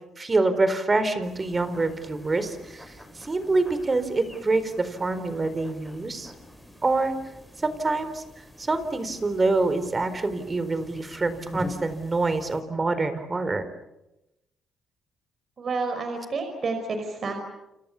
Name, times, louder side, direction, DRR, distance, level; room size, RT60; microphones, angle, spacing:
voice 1, 0.2-6.3 6.8-7.1 7.6-8.2 8.6-13.7, right 3 dB, 25° right, 12 dB, 4.1 m, -26 dB
sound 1, 1.2-12.6, left 1 dB, ahead, 7.1 m, -45 dB
voice 2, 15.6-17.4, right 3 dB, 45° right, 6 dB, 5.3 m, -29 dB
29.5 x 28.5 x 7.1 m, 0.93 s
cardioid pair, 90°, 0 cm